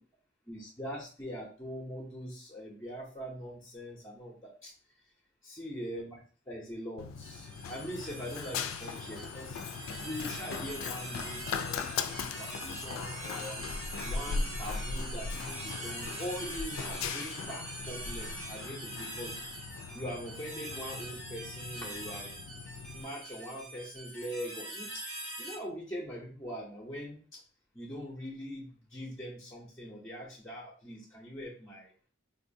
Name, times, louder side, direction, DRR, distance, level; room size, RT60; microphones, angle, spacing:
voice 1, 0.5-4.7 5.4-6.2 6.5-9.6 10.0-11.8 12.1-13.6 14.0-19.4 19.9-24.9 25.2-27.4 27.7-31.9, equal, 15° left, -3 dB, 0.6 m, -42 dB
Run, 7.0-23.0, left 5 dB, 85° left, 0.3 m, -39 dB
sound 1, 7.2-25.6, right 1 dB, 30° right, 0.8 m, -43 dB
3.8 x 2.6 x 2.6 m, 0.41 s
head